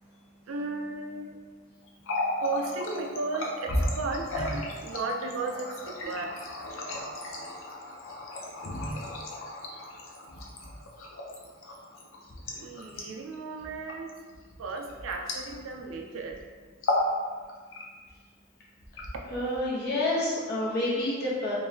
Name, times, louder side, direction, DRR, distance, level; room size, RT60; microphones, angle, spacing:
voice 1, 0.5-1.4 2.4-6.2 12.5-14.1 14.6-16.4, right 3 dB, 70° right, 3 dB, 0.4 m, -35 dB
Water tap faucet, 1.9-15.9 16.2-16.4 16.7-17.2 17.5-18.1 18.8-19.6, left 1 dB, 70° left, 0.6 m, -34 dB
voice 2, 19.3-21.5, left 1 dB, 50° left, -6 dB, 1.0 m, -28 dB
3.6 x 3.2 x 2.7 m, 1.5 s
head